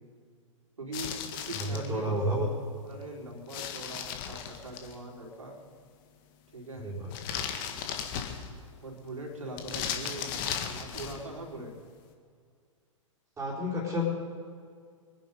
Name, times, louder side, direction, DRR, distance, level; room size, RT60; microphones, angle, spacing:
voice 1, 0.8-2.2 2.8-5.6 6.5-6.9 8.8-11.7, right 1 dB, 75° right, -1 dB, 4.0 m, -41 dB
sound 1, 0.9-1.9 3.5-4.9 7.1-8.7 9.6-11.2, left 8 dB, 40° left, 1.8 m, -36 dB
voice 2, 1.5-2.5 6.8-7.1 13.4-14.1, equal, 10° right, -8 dB, 3.9 m, -30 dB
23.5 x 10.5 x 5.3 m, 2.1 s
figure-of-eight pair, 110°, 17 cm